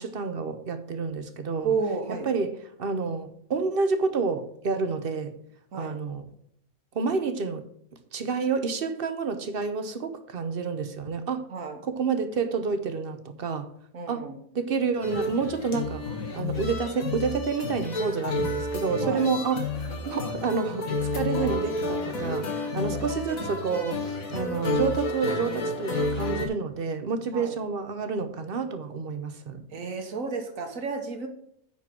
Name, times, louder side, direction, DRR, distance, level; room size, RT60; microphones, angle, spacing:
voice 1, 0.0-1.8 2.1-5.4 5.7-6.3 6.9-7.7 8.1-11.5 11.8-13.7 14.1-14.3 14.5-16.0 16.3-29.7, right 5 dB, 50° right, 0.9 m, -29 dB
voice 2, 1.6-2.3 5.7-6.0 11.5-11.8 13.9-14.4 19.0-19.3 22.9-23.4 27.3-27.6 29.7-31.3, right 4 dB, 70° right, 1.7 m, -32 dB
sound 1, 15.0-26.5, left 2 dB, 75° left, 2.0 m, -30 dB
9.2 x 4.5 x 6.0 m
omnidirectional pair, 1.5 m